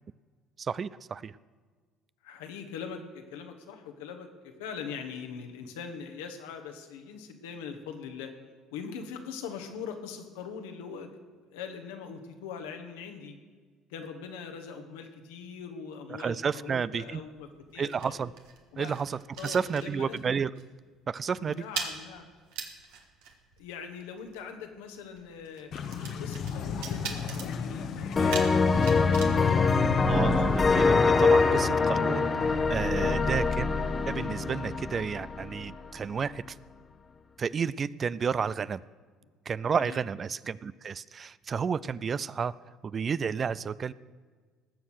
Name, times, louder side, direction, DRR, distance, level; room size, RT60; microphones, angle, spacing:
voice 1, 0.6-1.4 16.1-17.2 17.8-18.3 18.8-20.5 21.1-21.6 30.1-33.7 34.1-36.6 37.4-38.8 39.5-42.5 42.8-43.9, right 6 dB, 40° right, 19 dB, 0.4 m, -31 dB
voice 2, 2.2-8.3 8.7-11.1 11.5-13.4 13.9-18.2 18.7-19.0 19.4-20.2 21.4-22.3 23.6-25.7 26.2-30.7 33.1-33.3 39.8-40.0, left 6 dB, 75° left, 6 dB, 1.4 m, -42 dB
sound 1, 17.0-20.3 20.6-20.8 21.1-30.5, right 6 dB, 70° right, 1.6 m, -42 dB
sound 2, 25.7-31.6, left 6 dB, 55° left, 1.1 m, -37 dB
sound 3, 28.2-35.8, left 4 dB, 30° left, 1.0 m, -24 dB
19.0 x 7.2 x 6.3 m, 1.5 s
hypercardioid pair, 60°, 0 cm